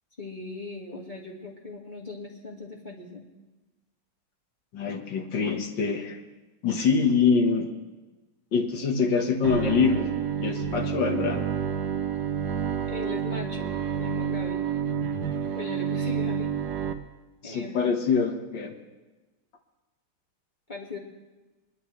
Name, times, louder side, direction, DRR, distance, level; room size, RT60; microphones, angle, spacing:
voice 1, 0.2-3.2 12.9-14.6 15.5-16.5 17.4-18.0 20.7-21.0, left 3 dB, 25° left, -1 dB, 1.8 m, -38 dB
voice 2, 4.7-6.2 6.6-7.7 8.5-10.1 10.4-11.5 17.4-18.7, left 5 dB, 60° left, 3 dB, 2.0 m, -24 dB
Bowed string instrument, 9.4-16.9, right 7 dB, 60° right, 1.3 m, -29 dB
23.0 x 11.5 x 3.3 m, 1.2 s
omnidirectional pair, 2.3 m